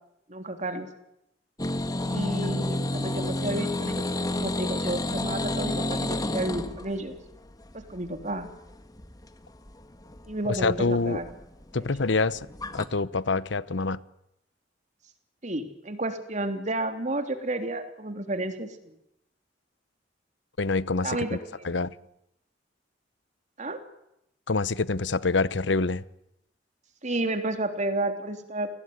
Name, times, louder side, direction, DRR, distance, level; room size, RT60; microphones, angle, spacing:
voice 1, 0.3-0.9 2.0-7.2 7.7-8.5 10.2-11.3 11.8-11.9 15.4-18.9 21.0-21.9 23.6-23.8 27.0-28.7, right 1 dB, 40° right, 3.4 m, -31 dB
sound 1, 1.6-12.9, left 1 dB, 20° left, 1.7 m, -30 dB
voice 2, 10.6-11.2 11.7-12.4 12.7-14.0 20.6-21.4 21.6-21.9 24.5-26.0, left 3 dB, 75° left, 0.9 m, -26 dB
30.0 x 20.0 x 9.5 m
head